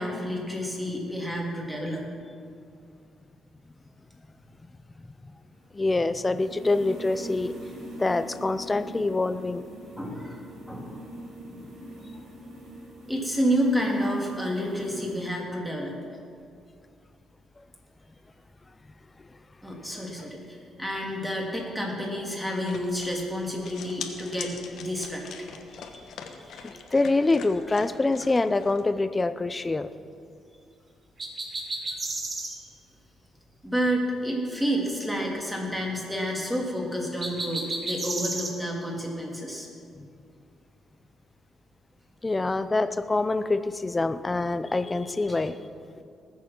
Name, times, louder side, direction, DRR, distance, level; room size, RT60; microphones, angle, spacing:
voice 1, 0.0-2.0 10.0-10.4 10.7-11.0 11.4-11.6 13.1-15.9 19.6-25.3 25.7-26.0 26.4-26.7 32.7-32.8 33.6-39.7 45.3-45.4, equal, 5° right, -2 dB, 3.1 m, -30 dB
sound 1, 5.5-15.2, right 1 dB, 65° right, 4.2 m, -43 dB
voice 2, 5.7-7.5 8.0-9.6 26.6-29.9 42.2-45.7, left 2 dB, 20° left, 12 dB, 0.6 m, -25 dB
sound 2, 22.7-28.8, left 6 dB, 70° left, 1.2 m, -43 dB
sound 3, 31.2-32.6 37.2-38.5, right 2 dB, 30° right, 1.9 m, -32 dB
19.5 x 7.3 x 6.0 m, 2.4 s
cardioid pair, 90°, 0 cm